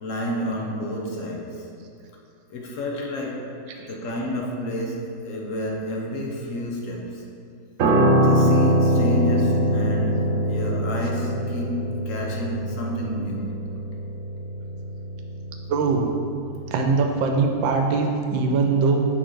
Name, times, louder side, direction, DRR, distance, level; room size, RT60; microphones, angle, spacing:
voice 1, 0.0-1.6 2.5-3.4 3.8-7.2 8.2-13.5, left 1 dB, 55° left, -1 dB, 0.9 m, -30 dB
Piano, 7.8-17.2 17.4-17.7, right 1 dB, 60° right, 0.9 m, -23 dB
voice 2, 15.7-16.1 16.7-19.1, right 4 dB, 80° right, 3 dB, 1.4 m, -21 dB
6.3 x 4.0 x 4.6 m, 2.4 s
omnidirectional pair, 2.1 m